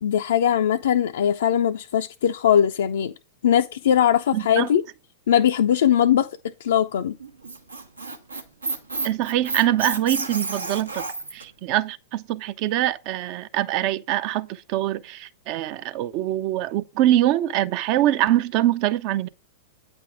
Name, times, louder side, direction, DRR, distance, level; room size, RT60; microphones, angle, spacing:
voice 1, 0.0-3.1 3.4-4.8 5.3-6.3 6.6-7.2, left 9 dB, 65° left, 0.4 m, -20 dB
voice 2, 4.3-4.7 9.0-11.0 11.3-19.3, right 13 dB, 45° right, 0.5 m, -24 dB
Squeak, 7.2-11.4, right 3 dB, 85° right, 0.9 m, -30 dB
8.9 x 3.5 x 4.9 m
figure-of-eight pair, 95°, 0 cm